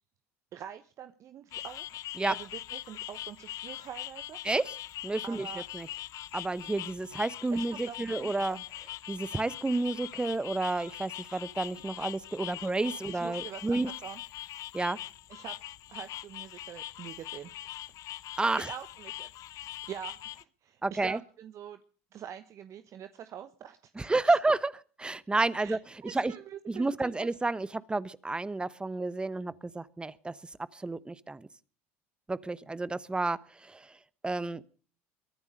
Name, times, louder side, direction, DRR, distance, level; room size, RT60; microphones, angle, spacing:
voice 1, 0.5-2.0 2.3-4.4 5.2-5.7 7.5-8.6 13.1-14.2 15.3-15.6 15.9-17.5 18.6-21.8 22.1-24.4 25.6-27.3, right 10 dB, 45° right, 10 dB, 1.1 m, -45 dB
sound 1, 1.5-20.4, left 14 dB, 50° left, 0.7 m, -42 dB
voice 2, 5.0-5.4 5.7-5.9 6.3-8.6 9.1-13.9 14.7-15.0 18.4-18.7 20.8-21.2 24.0-24.7 25.0-25.8 26.1-26.3 26.7-30.3 30.7-31.5 32.3-33.4 33.7-33.8 34.2-34.6, right 2 dB, 15° right, 18 dB, 1.0 m, -30 dB
22.5 x 9.6 x 6.5 m, 0.42 s
hypercardioid pair, 75°, 7 cm